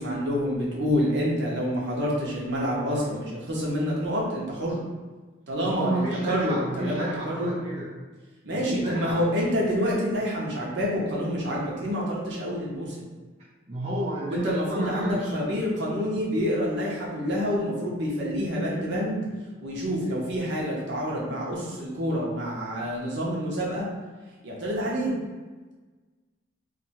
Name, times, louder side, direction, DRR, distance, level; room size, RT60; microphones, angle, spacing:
voice 1, 0.0-4.8 5.5-7.5 8.4-13.1 14.3-19.2 19.6-23.9 24.4-25.1, equal, 60° right, -4 dB, 0.9 m, -27 dB
voice 2, 5.6-7.9 8.5-9.3 13.7-15.3, right 1 dB, 35° right, -8 dB, 0.5 m, -31 dB
2.7 x 2.5 x 4.1 m, 1.3 s
head